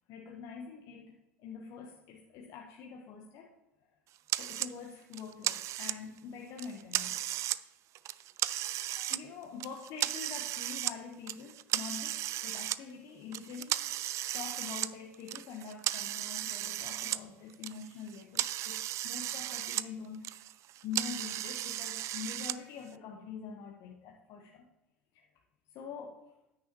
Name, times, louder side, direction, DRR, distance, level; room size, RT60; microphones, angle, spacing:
voice 1, 0.1-3.5 3.8-3.9 4.3-7.3 8.9-14.0 14.3-20.6 20.8-24.7 25.1-25.3 25.7-26.2, left 6 dB, 55° left, 0 dB, 1.1 m, -45 dB
sound 1, 4.3-4.7 5.1-6.2 6.6-7.6 8.0-9.2 9.6-11.0 11.3-12.8 13.3-17.2 17.5-19.9 20.1-22.6, right 14 dB, 45° right, 0.4 m, -35 dB
9.4 x 9.1 x 3.0 m, 0.94 s
hypercardioid pair, 80°, 7 cm